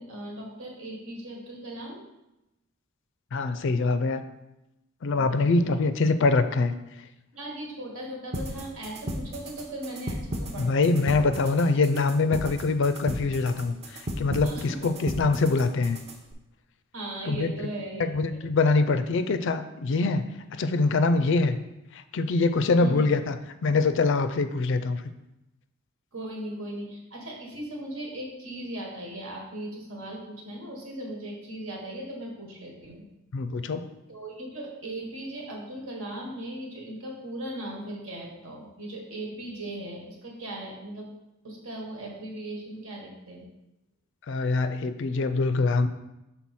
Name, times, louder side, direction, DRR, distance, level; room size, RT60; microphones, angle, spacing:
voice 1, 0.0-2.0 5.1-5.8 7.3-11.2 14.4-14.9 16.9-18.4 22.8-23.1 26.1-33.0 34.1-41.1 41.4-43.5, right 1 dB, 75° right, -1 dB, 1.5 m, -38 dB
voice 2, 3.3-4.2 5.0-6.7 10.6-16.0 17.3-17.5 18.0-21.6 21.9-23.4 23.6-25.0 33.3-33.8 44.3-45.9, left 3 dB, 60° left, 10 dB, 0.4 m, -24 dB
sound 1, 8.3-16.3, equal, 30° right, 0.6 m, -36 dB
6.1 x 3.9 x 4.2 m, 0.93 s
head